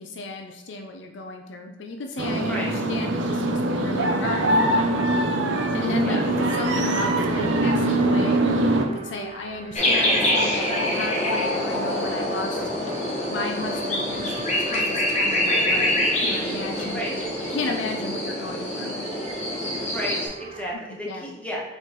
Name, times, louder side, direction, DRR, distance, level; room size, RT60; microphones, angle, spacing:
voice 1, 0.0-5.1 5.4-8.4 9.0-12.6 13.3-17.2 17.5-19.0 21.0-21.3, left 3 dB, 70° left, 3 dB, 0.5 m, -34 dB
sound 1, 2.2-8.9, right 1 dB, 70° right, 0.6 m, -22 dB
sound 2, 5.8-20.7, right 1 dB, 35° right, 0.4 m, -38 dB
sound 3, 9.8-20.3, left 1 dB, 35° left, 1.1 m, -25 dB
voice 2, 19.9-21.6, equal, 5° left, -4 dB, 1.2 m, -32 dB
4.2 x 3.9 x 3.1 m, 1.1 s
head